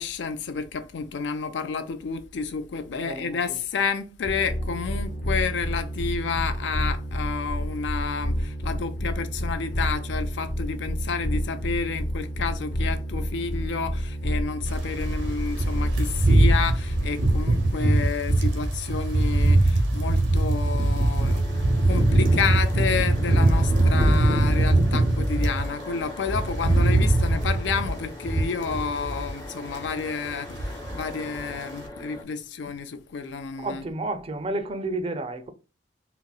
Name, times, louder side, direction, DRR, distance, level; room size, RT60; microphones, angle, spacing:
voice 1, 0.0-33.9, left 5 dB, 80° left, 0.4 m, -30 dB
voice 2, 2.9-3.6 33.6-35.5, right 2 dB, 30° right, 0.4 m, -31 dB
sound 1, 4.2-17.7, equal, 55° left, 0.9 m, -29 dB
sound 2, 14.7-25.7 26.0-29.4 29.7-30.0 30.3-31.1 31.3-31.6, right 2 dB, 90° right, 0.7 m, -22 dB
sound 3, 21.2-32.2, left 2 dB, 20° left, 0.5 m, -41 dB
4.0 x 2.0 x 2.3 m
head